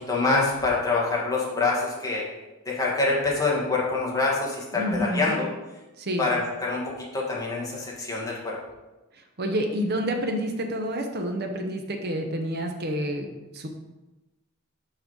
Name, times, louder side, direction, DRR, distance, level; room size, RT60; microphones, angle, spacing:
voice 1, 0.1-2.3 2.6-5.5 6.2-8.6, left 3 dB, 15° left, -4 dB, 1.4 m, -25 dB
voice 2, 4.7-5.4 6.0-6.3 9.4-13.7, equal, 50° right, 4 dB, 0.9 m, -28 dB
6.0 x 5.4 x 3.9 m, 1.1 s
head